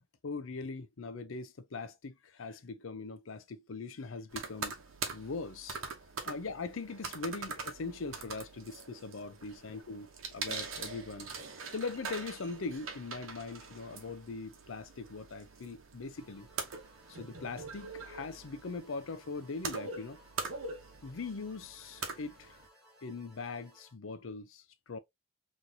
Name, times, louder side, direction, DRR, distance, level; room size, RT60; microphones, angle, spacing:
voice 1, 0.2-4.7 5.1-5.8 6.2-11.3 11.7-16.5 17.1-20.3 21.0-22.6 22.9-25.0, left 4 dB, 70° left, 0.6 m, -41 dB
sound 1, 4.3-22.7, right 4 dB, 80° right, 0.9 m, -43 dB
sound 2, 16.2-23.9, right 1 dB, 5° right, 1.3 m, -62 dB
4.0 x 3.1 x 2.7 m
head